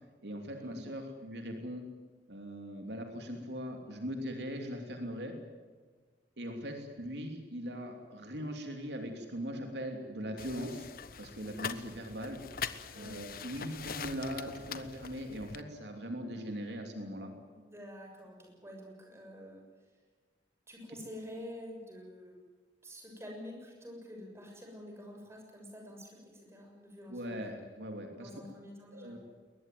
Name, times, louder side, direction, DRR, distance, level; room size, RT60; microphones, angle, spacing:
voice 1, 0.2-1.8 2.3-5.3 6.4-10.9 11.2-12.4 12.9-17.3 27.1-28.3 28.9-29.2, equal, 75° right, 4 dB, 3.1 m, -40 dB
sound 1, 10.4-15.6, left 6 dB, 55° left, 1.0 m, -43 dB
voice 2, 12.9-13.3 17.5-19.6 20.7-22.3 22.8-27.6 28.2-29.2, equal, 15° right, 1 dB, 6.9 m, -48 dB
22.0 x 20.0 x 9.3 m, 1.5 s
head